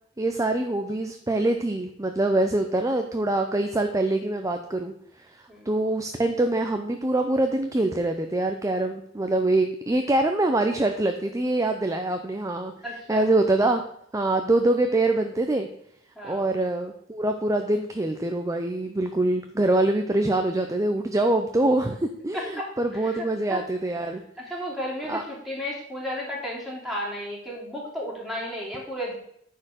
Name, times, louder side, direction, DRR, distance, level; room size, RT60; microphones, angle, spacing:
voice 1, 0.2-4.9 5.7-12.7 13.1-13.8 14.1-15.7 16.2-24.2 25.1-25.2, right 2 dB, 15° right, 5 dB, 0.6 m, -24 dB
voice 2, 12.8-13.3 16.2-16.5 22.3-22.7 23.0-23.6 24.5-29.2, equal, ahead, -4 dB, 2.9 m, -33 dB
9.6 x 4.6 x 6.4 m, 0.71 s
head